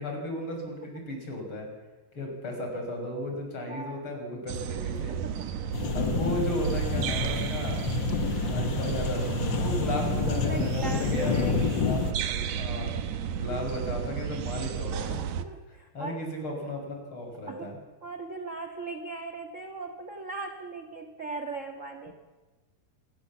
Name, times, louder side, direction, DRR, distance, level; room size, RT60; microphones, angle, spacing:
voice 1, 0.0-1.7 2.1-5.2 5.9-7.8 8.4-12.9 13.3-15.2 15.7-17.8, left 1 dB, 35° left, 2 dB, 6.5 m, -35 dB
voice 2, 3.6-4.1 5.1-5.7 8.3-8.4 9.8-9.9 10.3-11.8 15.4-16.2 17.5-17.7 18.0-22.1, right 3 dB, 45° right, 4 dB, 1.0 m, -38 dB
sound 1, 4.5-15.5, right 8 dB, 65° right, 2.2 m, -32 dB
sound 2, 5.7-12.1, left 5 dB, 55° left, 1.3 m, -29 dB
26.5 x 20.5 x 7.3 m, 1.2 s
omnidirectional pair, 4.0 m